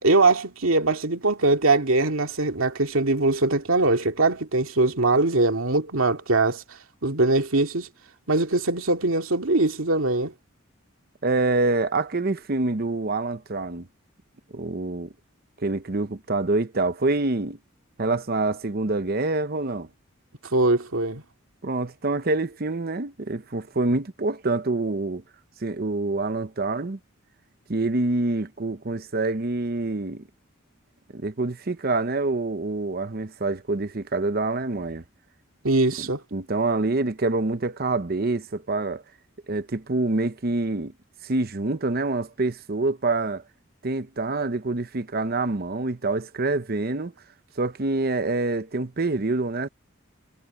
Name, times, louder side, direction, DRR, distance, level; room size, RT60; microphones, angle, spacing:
voice 1, 0.0-6.6 7.0-7.9 8.3-10.3 20.5-21.2 35.6-36.2, right 2 dB, 75° right, 2.3 m, -22 dB
voice 2, 11.2-13.9 14.5-15.1 15.6-17.6 18.0-19.9 21.6-25.2 25.6-27.0 27.7-30.2 31.1-35.0 36.0-39.0 39.5-40.9 41.2-43.4 43.8-47.1 47.6-49.7, right 2 dB, 45° right, 0.8 m, -26 dB
head